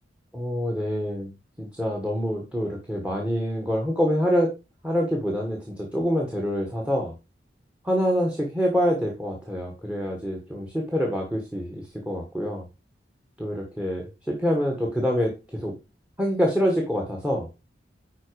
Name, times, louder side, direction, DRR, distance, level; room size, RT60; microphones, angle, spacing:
voice 1, 0.3-1.3 1.6-4.5 4.8-7.1 7.8-12.6 13.4-15.7 16.2-17.5, equal, 5° right, 1 dB, 1.6 m, -26 dB
10.5 x 4.5 x 4.8 m, 0.28 s
head